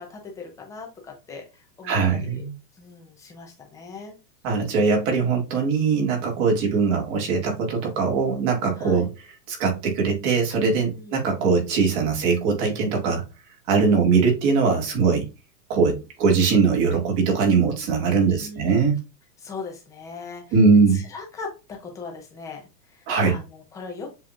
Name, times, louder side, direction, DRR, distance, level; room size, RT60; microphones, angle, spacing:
voice 1, 0.0-2.5 2.7-4.1 8.8-9.0 10.9-11.1 18.2-18.9 19.4-20.6 20.9-24.1, left 4 dB, 5° left, 0.4 m, -39 dB
voice 2, 1.8-2.5 4.4-9.1 9.5-13.2 13.7-15.3 15.7-19.0 20.5-21.0 23.1-23.4, right 5 dB, 45° right, 2.0 m, -21 dB
7.4 x 2.9 x 2.4 m
supercardioid pair, 145°, 50 cm